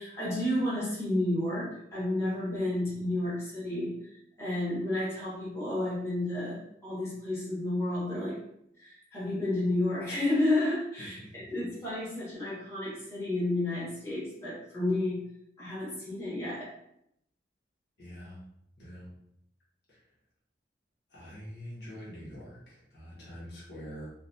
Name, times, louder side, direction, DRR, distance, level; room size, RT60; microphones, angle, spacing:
voice 1, 0.0-8.4 8.7-15.2 15.6-16.7, left 1 dB, 15° left, -10 dB, 1.5 m, -31 dB
voice 2, 11.0-11.5 18.0-18.5 18.8-19.2 19.9-20.1 21.1-24.1, equal, 70° left, -7 dB, 1.3 m, -45 dB
3.9 x 2.4 x 2.7 m, 0.76 s
head